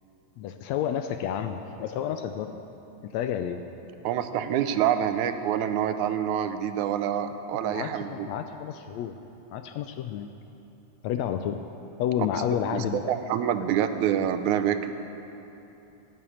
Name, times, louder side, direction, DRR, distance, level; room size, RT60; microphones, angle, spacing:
voice 1, 0.4-2.6 3.0-3.6 7.6-9.1 9.5-10.3 11.0-11.6 12.0-13.2, left 9 dB, 80° left, 8 dB, 1.6 m, -30 dB
voice 2, 4.0-8.3 12.7-14.9, right 9 dB, 80° right, 9 dB, 2.1 m, -26 dB
16.0 x 7.9 x 8.5 m, 3.0 s
omnidirectional pair, 3.5 m